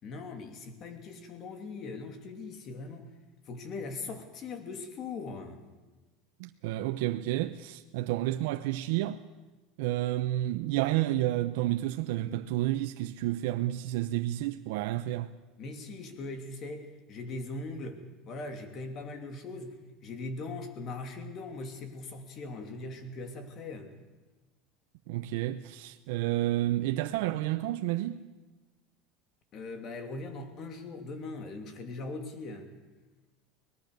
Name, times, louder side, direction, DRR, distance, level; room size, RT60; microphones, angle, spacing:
voice 1, 0.0-3.1 3.5-5.6 15.6-19.8 20.0-23.9 29.5-32.7, left 3 dB, 40° left, 2.9 m, -40 dB
voice 2, 6.4-9.2 9.8-15.3 25.1-28.2, right 15 dB, 75° right, 0.7 m, -30 dB
24.0 x 19.0 x 6.8 m
supercardioid pair, 145°, 0 cm